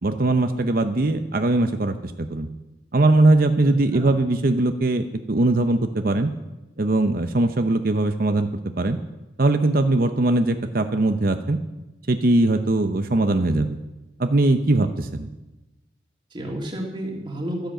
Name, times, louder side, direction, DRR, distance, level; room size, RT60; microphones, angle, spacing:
voice 1, 0.0-2.5 2.9-6.3 6.8-8.5 8.8-9.0 9.4-11.6 12.1-13.8 14.2-15.3, right 2 dB, 50° right, 7 dB, 0.8 m, -20 dB
voice 2, 3.6-4.1 16.3-17.7, right 1 dB, 25° right, -1 dB, 2.2 m, -31 dB
13.0 x 10.5 x 7.7 m, 1.0 s
head